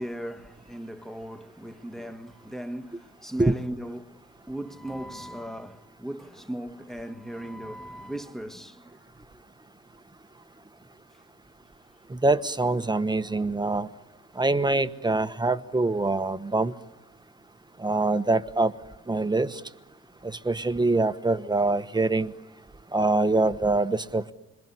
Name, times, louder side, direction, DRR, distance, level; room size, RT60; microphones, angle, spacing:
voice 1, 0.0-8.9 9.3-9.4, right 1 dB, ahead, 1.5 m, -38 dB
voice 2, 12.1-13.9 14.4-16.7 17.8-18.7 19.1-19.6 20.2-22.3 22.9-24.3, right 2 dB, 15° right, 1.2 m, -24 dB
28.0 x 21.5 x 9.9 m
cardioid pair, 90°, 30 cm